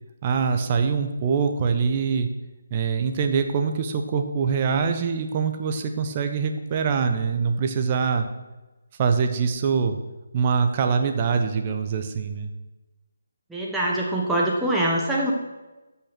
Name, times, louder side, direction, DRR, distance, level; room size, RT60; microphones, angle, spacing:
voice 1, 0.2-2.3 2.7-8.3 9.0-10.0 10.3-12.5, right 5 dB, 25° right, 6 dB, 1.0 m, -24 dB
voice 2, 13.5-15.3, right 1 dB, 5° right, -4 dB, 1.2 m, -24 dB
14.5 x 5.8 x 6.2 m, 1.1 s
figure-of-eight pair, 145°, 0 cm